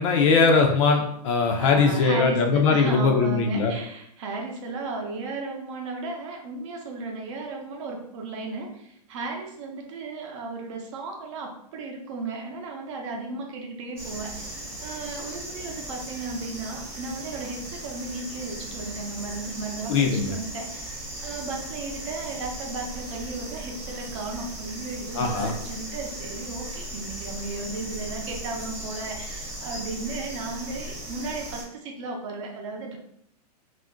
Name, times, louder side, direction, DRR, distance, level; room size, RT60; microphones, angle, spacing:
voice 1, 0.0-3.7 19.9-20.3 25.2-25.5, left 4 dB, 45° left, 3 dB, 0.5 m, -21 dB
voice 2, 1.6-33.0, right 3 dB, 45° right, 1 dB, 0.7 m, -35 dB
sound 1, 14.0-31.6, right 1 dB, 10° right, 0.8 m, -37 dB
2.5 x 2.1 x 3.6 m, 0.71 s
hypercardioid pair, 150°, 21 cm